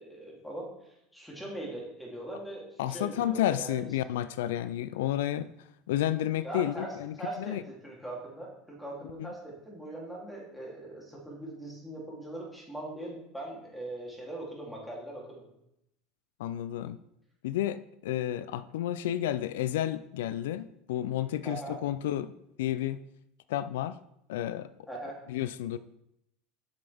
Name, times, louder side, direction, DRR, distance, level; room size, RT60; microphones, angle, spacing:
voice 1, 0.0-3.8 6.4-15.4 21.4-21.8 24.9-25.2, right 1 dB, 5° left, -3 dB, 3.0 m, -41 dB
voice 2, 2.8-5.5 5.9-7.6 9.2-9.3 16.4-17.0 17.4-22.3 22.6-23.0 23.5-24.0 24.3-24.7 25.3-25.8, left 12 dB, 85° left, 14 dB, 0.3 m, -31 dB
7.6 x 7.1 x 3.5 m, 0.81 s
supercardioid pair, 110°, 0 cm